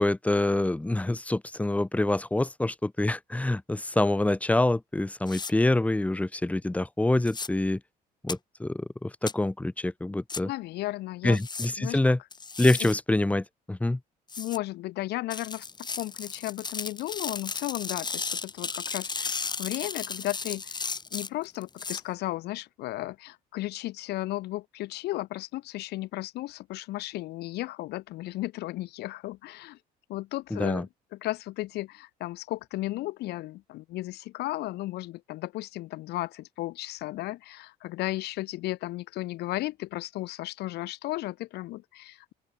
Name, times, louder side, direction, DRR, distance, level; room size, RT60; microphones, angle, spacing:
voice 1, 0.0-7.8 8.2-10.5 11.2-12.2 12.6-14.0 30.5-30.8, left 2 dB, 10° left, 1.0 m, -26 dB
sound 1, 5.3-5.5 7.3-7.5 8.3-8.4 9.3-9.4 10.3-10.4 11.3-11.7 12.3-12.9 14.3-14.6 15.3-22.0, left 4 dB, 25° left, 3.0 m, -35 dB
voice 2, 10.4-11.4 11.8-12.0 12.8-12.9 14.4-15.7 16.0-20.8 21.1-29.8 30.1-42.3, left 17 dB, 80° left, 1.0 m, -34 dB
open air
cardioid pair, 110°, 17 cm